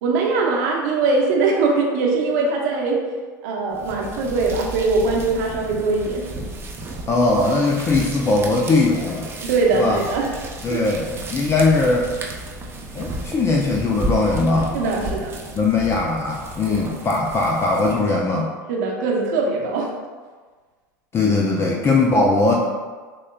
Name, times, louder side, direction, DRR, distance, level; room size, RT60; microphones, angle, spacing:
voice 1, 0.0-3.0 3.4-6.3 9.4-10.3 10.7-10.8 14.7-15.4 16.7-16.9 18.7-19.9, right 3 dB, 65° right, -1 dB, 0.8 m, -21 dB
sound 1, 3.7-18.2, right 1 dB, 25° right, 0.6 m, -33 dB
voice 2, 7.1-9.3 9.7-10.0 10.6-12.1 12.9-14.8 15.6-18.5 21.1-22.5, left 3 dB, 25° left, -1 dB, 0.4 m, -20 dB
6.1 x 2.2 x 2.2 m, 1.4 s
hypercardioid pair, 80°, 10 cm